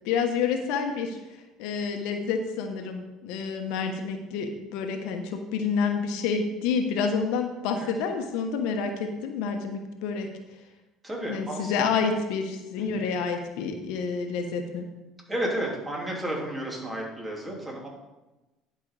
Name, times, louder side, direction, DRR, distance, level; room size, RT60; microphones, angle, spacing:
voice 1, 0.0-1.2 1.6-10.3 11.3-14.9, left 5 dB, 75° left, 5 dB, 1.2 m, -28 dB
voice 2, 11.0-11.7 12.8-13.0 15.3-17.9, right 1 dB, 20° right, -2 dB, 3.4 m, -32 dB
11.0 x 5.5 x 4.9 m, 1.1 s
supercardioid pair, 85°, 0 cm